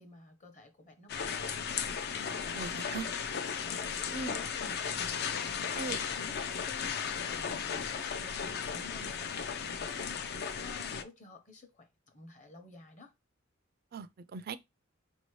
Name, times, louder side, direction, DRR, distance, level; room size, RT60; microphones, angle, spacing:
voice 1, 0.0-1.7 2.3-3.0 3.5-5.7 6.1-9.3 9.8-10.3 10.6-13.1, left 3 dB, 40° left, 0.9 m, -53 dB
sound 1, 1.1-11.0, left 6 dB, 55° left, 0.4 m, -35 dB
voice 2, 2.5-3.1 4.1-4.3 5.8-6.0 13.9-14.6, right 4 dB, 50° right, 0.4 m, -39 dB
5.0 x 2.7 x 3.1 m
head